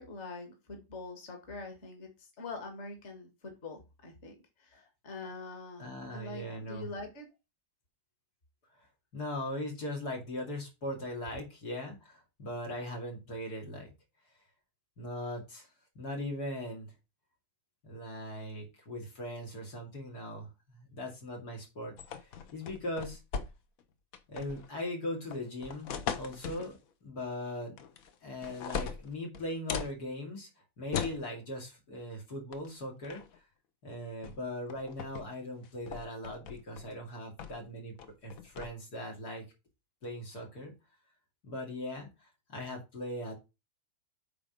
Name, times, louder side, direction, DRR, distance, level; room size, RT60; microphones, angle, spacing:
voice 1, 0.0-7.3, left 3 dB, 45° left, 3 dB, 2.1 m, -44 dB
voice 2, 5.8-6.9 9.1-13.9 15.0-15.7 15.9-16.9 17.8-23.2 24.3-25.9 26.1-27.8 28.2-30.5 30.8-33.2 33.8-37.9 38.2-39.4 40.0-40.7 41.4-42.1 42.5-43.3, left 1 dB, 85° left, 0 dB, 3.1 m, -39 dB
sound 1, 22.0-23.8 24.1-24.7 25.3-26.7 27.8-28.1 28.4-30.0 30.9-31.2 32.5-32.7 33.0-33.4 34.2-34.4 34.7-35.3 35.6-36.9 37.4-37.7 38.0-38.7, left 7 dB, 65° left, 1.2 m, -39 dB
8.6 x 3.8 x 5.1 m, 0.26 s
omnidirectional pair, 1.6 m